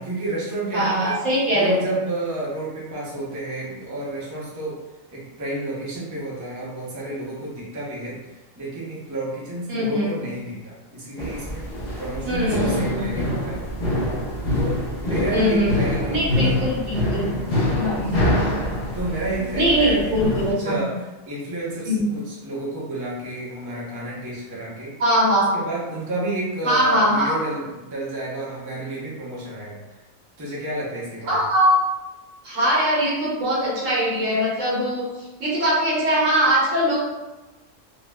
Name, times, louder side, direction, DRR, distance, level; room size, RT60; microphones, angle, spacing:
voice 1, 0.0-1.2 1.5-4.8 5.1-8.2 8.6-11.7 12.0-13.7 14.5-16.5 17.2-17.7 18.9-20.9 21.3-25.0 25.5-29.8 30.4-31.4, right 2 dB, 20° right, -6 dB, 0.5 m, -30 dB
voice 2, 0.7-1.8 9.7-10.1 12.2-13.0 15.3-15.7 16.1-17.3 17.7-18.1 19.6-20.8 21.8-22.0 25.0-25.5 26.6-27.3 31.3-31.7 32.4-37.0, equal, 75° right, -6 dB, 1.4 m, -21 dB
sound 1, 11.2-20.5, left 1 dB, 45° left, 0.6 m, -25 dB
3.8 x 2.0 x 2.2 m, 1.1 s
omnidirectional pair, 1.4 m